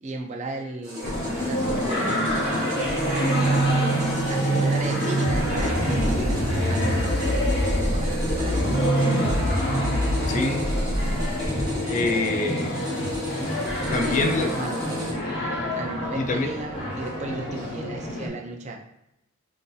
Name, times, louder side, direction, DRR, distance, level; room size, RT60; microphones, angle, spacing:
voice 1, 0.0-3.7 4.3-8.7 13.8-15.4 15.7-18.8, right 2 dB, 35° right, 2 dB, 0.4 m, -35 dB
sound 1, 0.8-15.1, left 3 dB, 20° right, 1.0 m, -35 dB
sound 2, 1.0-18.3, equal, 55° left, 1.0 m, -28 dB
sound 3, 2.7-14.5, right 1 dB, 70° left, 0.7 m, -27 dB
voice 2, 10.3-10.6 11.9-12.8 13.9-14.5 16.1-16.5, left 3 dB, 35° left, 4 dB, 0.3 m, -25 dB
3.8 x 2.6 x 2.3 m, 0.85 s
head